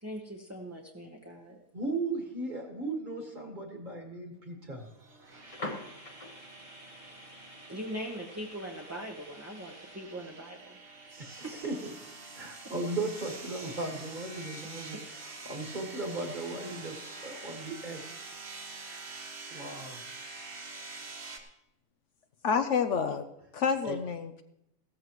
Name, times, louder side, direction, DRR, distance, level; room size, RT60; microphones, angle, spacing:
voice 1, 0.0-1.6 7.7-10.8 11.4-11.6, equal, 15° right, 0 dB, 0.9 m, -41 dB
voice 2, 1.7-4.9 11.2-11.9 12.4-18.0 19.5-20.0 23.8-24.0, right 2 dB, 35° right, 2 dB, 1.9 m, -37 dB
sound 1, 4.8-21.4, right 3 dB, 50° right, 1.6 m, -46 dB
sound 2, 5.3-10.0, left 2 dB, 30° left, 1.0 m, -46 dB
voice 3, 22.4-23.2 23.5-24.4, left 6 dB, 65° left, 8 dB, 0.9 m, -28 dB
16.0 x 14.0 x 3.0 m, 0.83 s
omnidirectional pair, 1.5 m